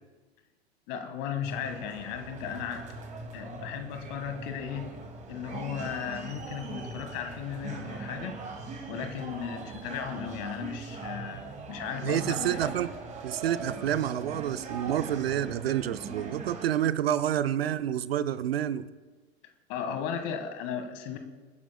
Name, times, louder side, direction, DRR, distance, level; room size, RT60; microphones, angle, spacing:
voice 1, 0.9-2.9 3.3-5.0 5.3-8.4 8.9-12.7 19.7-21.2, left 8 dB, 40° left, 1.6 m, -36 dB
sound 1, 1.4-16.7, right 4 dB, 20° right, 2.2 m, -41 dB
voice 2, 12.0-12.9 13.2-18.9, right 11 dB, 65° right, 0.7 m, -28 dB
28.0 x 10.0 x 2.2 m
figure-of-eight pair, 95°, 33 cm